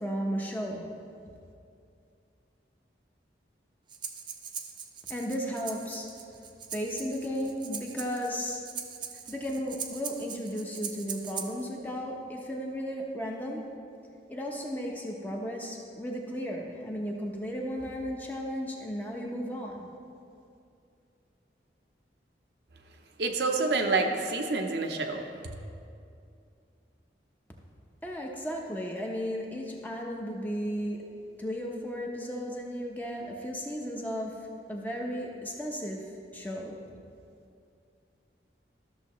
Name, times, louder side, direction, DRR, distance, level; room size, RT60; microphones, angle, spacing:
voice 1, 0.0-0.9 5.1-6.1 6.7-8.6 9.3-13.6 14.3-19.9 28.0-31.0 31.4-34.3 34.7-36.0 36.3-36.8, equal, 10° left, -1 dB, 0.8 m, -34 dB
Breathing, 3.9-11.7, right 7 dB, 25° right, 0.4 m, -41 dB
voice 2, 23.2-25.3, right 3 dB, 70° right, 3 dB, 0.7 m, -27 dB
13.0 x 6.8 x 3.1 m, 2.5 s
head